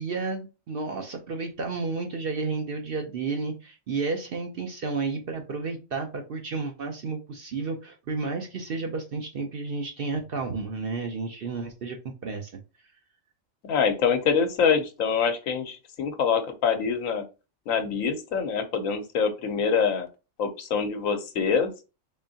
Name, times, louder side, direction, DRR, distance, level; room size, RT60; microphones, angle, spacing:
voice 1, 0.0-12.5, right 4 dB, 55° right, 3 dB, 0.7 m, -32 dB
voice 2, 13.6-17.2 17.7-20.1 20.4-21.7, left 6 dB, 80° left, 7 dB, 1.1 m, -25 dB
3.7 x 3.4 x 2.7 m, 0.30 s
omnidirectional pair, 1.4 m